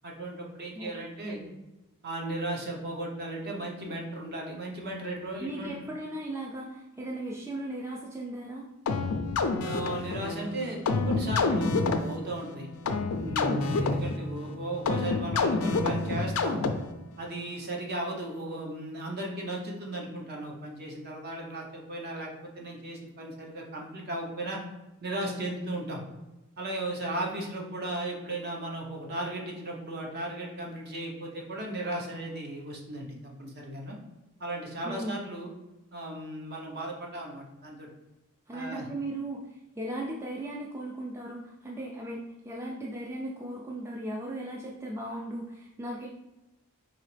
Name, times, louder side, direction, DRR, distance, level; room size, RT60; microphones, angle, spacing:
voice 1, 0.0-1.4 2.0-5.7 9.6-12.7 13.1-16.7 17.2-24.6 25.0-26.0 26.6-34.0 34.4-35.5 35.9-37.9 38.5-38.9, right 1 dB, 45° right, 0 dB, 0.8 m, -36 dB
voice 2, 1.2-1.5 5.4-8.6 34.8-35.3 38.5-39.4 39.8-46.1, right 1 dB, 10° right, -2 dB, 0.3 m, -37 dB
sound 1, 8.9-17.1, left 3 dB, 75° left, 0.4 m, -28 dB
3.9 x 2.9 x 3.2 m, 1.0 s
head